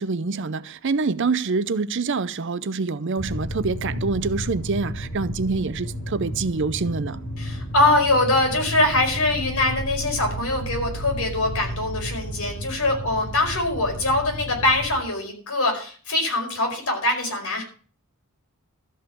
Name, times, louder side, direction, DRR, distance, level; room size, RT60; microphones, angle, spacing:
voice 1, 0.0-7.2, right 4 dB, 55° right, 0.6 m, -26 dB
sound 1, 3.2-14.9, equal, 50° left, 3.8 m, -32 dB
voice 2, 7.4-17.6, left 2 dB, 75° left, 4.9 m, -23 dB
13.0 x 5.6 x 8.4 m
head